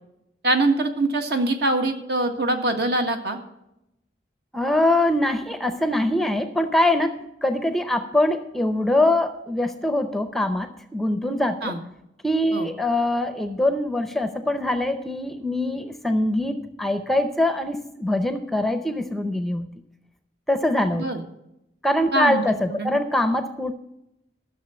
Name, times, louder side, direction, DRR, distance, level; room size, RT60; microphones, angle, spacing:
voice 1, 0.4-3.4 11.6-11.8 12.5-12.7 20.9-21.2 22.1-22.4 22.7-23.0, right 2 dB, 65° right, 5 dB, 1.7 m, -23 dB
voice 2, 4.5-11.7 12.2-19.7 20.5-21.0 21.8-23.7, left 1 dB, ahead, 9 dB, 0.6 m, -23 dB
13.5 x 6.7 x 6.9 m, 0.85 s
head